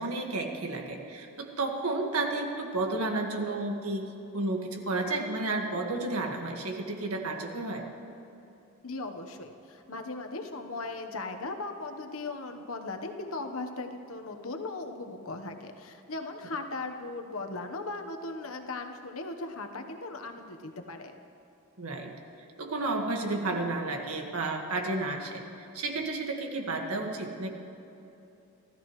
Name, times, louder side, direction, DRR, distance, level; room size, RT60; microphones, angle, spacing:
voice 1, 0.0-4.1 4.3-7.8 21.8-22.1 22.6-25.4 25.7-27.5, right 2 dB, 75° right, 2 dB, 1.8 m, -32 dB
voice 2, 8.8-21.1, left 3 dB, 70° left, 5 dB, 1.2 m, -38 dB
28.5 x 13.5 x 3.2 m, 3.0 s
head